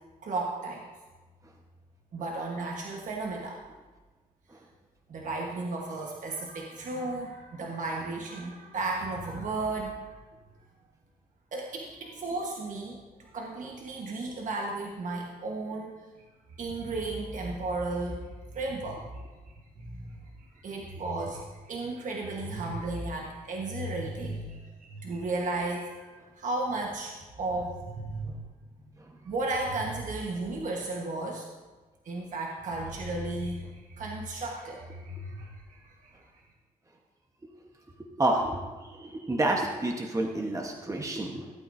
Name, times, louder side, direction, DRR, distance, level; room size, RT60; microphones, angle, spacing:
voice 1, 0.2-0.9 2.1-3.6 5.1-10.2 11.5-18.3 18.5-19.2 19.8-26.1 26.4-28.3 29.2-31.5 32.0-36.1, right 2 dB, 60° right, 0 dB, 1.3 m, -34 dB
voice 2, 38.2-41.5, right 1 dB, 20° right, 1 dB, 1.2 m, -29 dB
15.5 x 8.5 x 2.7 m, 1.3 s
cardioid pair, 75°, 15 cm